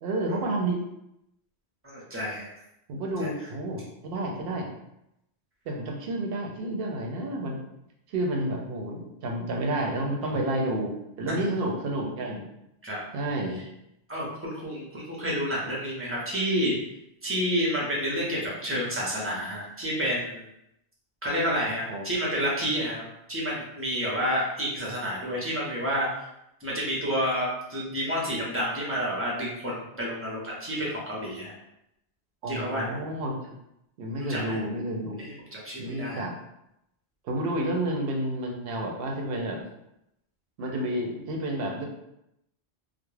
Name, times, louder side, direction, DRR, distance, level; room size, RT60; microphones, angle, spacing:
voice 1, 0.0-0.8 2.9-4.7 5.7-7.6 8.1-12.4 13.1-13.6 21.9-22.1 32.4-33.5 34.0-35.3 35.8-36.3 37.2-39.6 40.6-41.9, right 1 dB, 65° right, 1 dB, 0.7 m, -30 dB
voice 2, 1.8-2.5 3.2-3.3 12.8-13.4 14.1-16.8 17.2-20.5 21.2-26.1 26.6-31.5 32.5-33.0 34.3-34.6 35.2-36.2, equal, 15° right, -5 dB, 0.5 m, -29 dB
2.3 x 2.1 x 3.1 m, 0.82 s
omnidirectional pair, 1.1 m